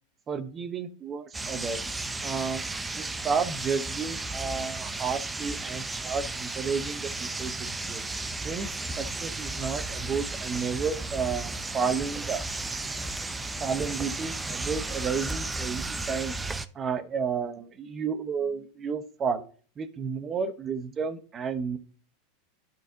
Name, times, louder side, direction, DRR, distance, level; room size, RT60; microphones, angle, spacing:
voice 1, 0.3-1.8 2.2-2.6 2.9-8.0 8.4-12.4 13.6-16.3 16.7-19.4 19.8-21.8, right 5 dB, 30° right, 11 dB, 0.9 m, -32 dB
sound 1, 1.3-16.7, right 2 dB, 10° right, 0.6 m, -34 dB
12.0 x 4.3 x 2.8 m, 0.40 s
supercardioid pair, 120°, 0 cm